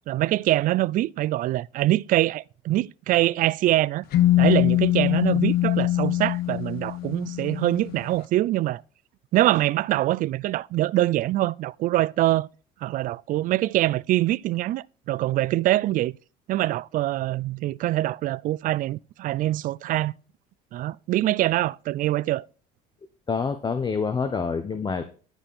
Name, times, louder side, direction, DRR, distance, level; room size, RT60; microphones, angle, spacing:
voice 1, 0.1-4.0 4.4-8.8 9.3-12.5 12.8-16.2 16.5-20.1 20.7-22.5, right 15 dB, 50° right, 0.4 m, -24 dB
sound 1, 4.1-8.0, left 14 dB, 55° left, 1.0 m, -23 dB
voice 2, 23.3-25.1, left 5 dB, 25° left, 0.9 m, -27 dB
11.5 x 4.4 x 5.4 m
supercardioid pair, 95°, 18 cm